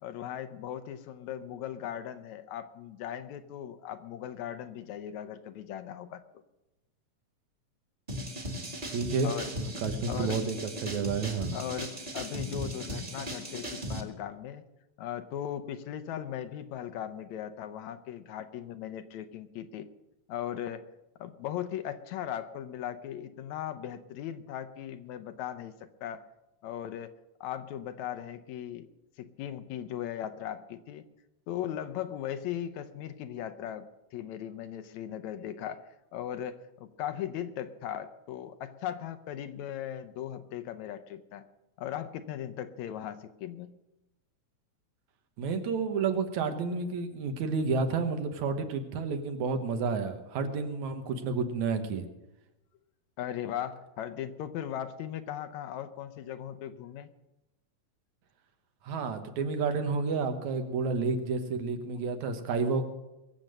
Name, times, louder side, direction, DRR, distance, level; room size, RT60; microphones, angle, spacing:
voice 1, 0.0-6.2 9.2-9.5 10.1-10.4 11.5-14.6 15.0-19.9 20.3-20.9 21.2-25.7 26.0-26.3 26.6-27.1 27.4-28.9 29.2-31.0 31.5-33.9 34.1-35.8 36.1-41.5 41.8-43.8 53.2-57.1, left 10 dB, 75° left, 11 dB, 2.1 m, -38 dB
sound 1, 8.1-14.0, equal, 20° right, 1.7 m, -37 dB
voice 2, 8.9-11.6 45.4-52.0 58.8-62.8, right 4 dB, 75° right, 7 dB, 2.6 m, -30 dB
22.5 x 7.7 x 6.5 m, 0.97 s
omnidirectional pair, 3.4 m